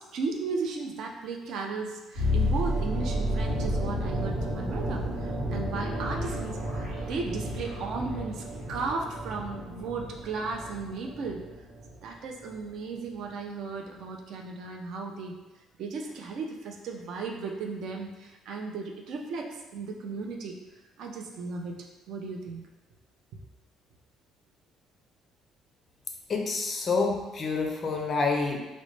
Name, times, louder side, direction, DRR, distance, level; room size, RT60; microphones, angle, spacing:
voice 1, 0.0-11.4 12.0-15.3 15.8-20.6 21.0-21.8 22.1-22.7, right 4 dB, 60° right, 1 dB, 0.4 m, -35 dB
sound 1, 2.2-12.1 12.4-12.6, equal, 85° right, 1.0 m, -31 dB
voice 2, 26.3-28.6, left 4 dB, 30° left, 2 dB, 0.4 m, -28 dB
3.9 x 2.1 x 3.1 m, 1.1 s
cardioid pair, 165°, 0 cm